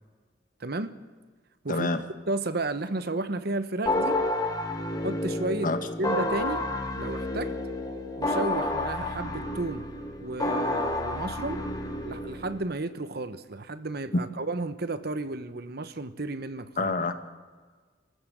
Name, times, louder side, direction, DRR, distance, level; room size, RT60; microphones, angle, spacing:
voice 1, 0.6-0.9 1.6-4.2 5.0-5.7 6.0-6.6 6.9-7.5 8.2-9.8 10.2-11.6 12.0-16.9, right 2 dB, 60° right, 12 dB, 1.1 m, -32 dB
voice 2, 1.7-2.0 5.6-5.8 14.1-14.2 16.8-17.1, left 2 dB, 50° left, 9 dB, 1.5 m, -26 dB
sound 1, 3.9-12.6, left 1 dB, 20° left, 1.8 m, -30 dB
25.5 x 14.5 x 8.0 m, 1.4 s
head